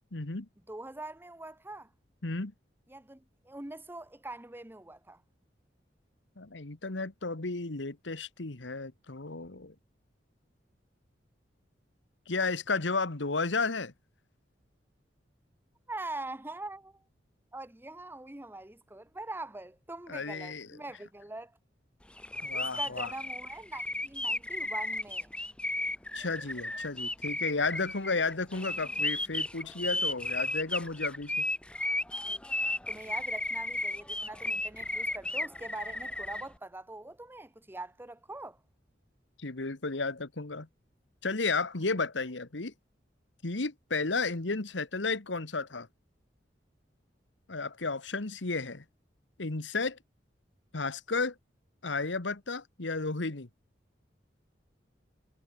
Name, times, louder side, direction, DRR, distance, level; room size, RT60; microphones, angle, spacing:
voice 1, 0.1-0.5 2.2-2.5 6.4-9.7 12.3-13.9 20.1-20.7 22.4-23.1 26.1-31.4 39.4-40.7 41.2-42.7 43.4-45.9 47.5-48.8 49.4-50.0 50.7-51.3 51.8-53.5, left 3 dB, 85° left, 1.6 m, -33 dB
voice 2, 0.7-1.9 2.9-5.2 15.9-17.0 17.5-21.5 22.5-25.3 32.9-38.6, right 2 dB, 10° right, 1.0 m, -43 dB
sound 1, 22.2-36.4, left 1 dB, 5° left, 0.6 m, -34 dB
head